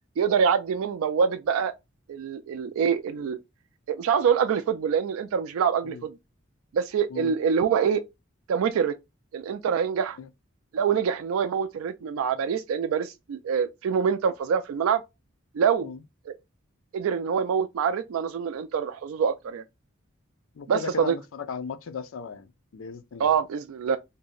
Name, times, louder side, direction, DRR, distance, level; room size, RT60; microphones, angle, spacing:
voice 1, 0.2-1.7 2.1-3.4 3.9-6.2 6.7-8.0 8.5-9.0 9.3-10.2 10.7-15.0 15.5-15.9 16.3-16.4 16.9-19.6 20.7-21.2 23.2-24.0, right 7 dB, 80° right, 0.3 m, -25 dB
voice 2, 20.5-23.4, left 5 dB, 75° left, 0.4 m, -37 dB
2.6 x 2.1 x 3.8 m
head